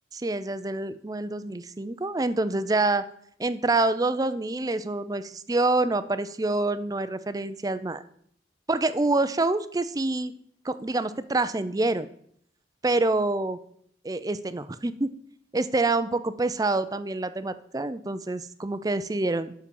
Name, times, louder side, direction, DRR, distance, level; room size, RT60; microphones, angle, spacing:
voice 1, 0.1-3.0 3.4-8.0 8.7-10.3 10.6-12.1 12.8-13.6 14.0-15.1 15.5-19.5, right 2 dB, 20° right, 13 dB, 0.5 m, -26 dB
8.4 x 6.0 x 6.9 m, 0.66 s
head